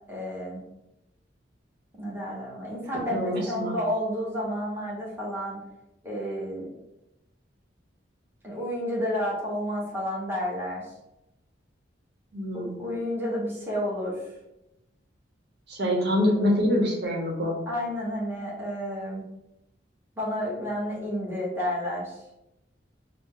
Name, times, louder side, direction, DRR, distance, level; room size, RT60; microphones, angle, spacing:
voice 1, 0.1-0.6 2.0-5.6 6.0-6.7 8.4-10.8 12.5-14.2 17.7-19.2 20.2-22.2, equal, 10° right, -5 dB, 1.1 m, -31 dB
voice 2, 3.1-3.8 12.3-12.8 15.7-17.5, left 1 dB, 65° right, -1 dB, 1.0 m, -25 dB
5.1 x 2.1 x 3.7 m, 0.89 s
head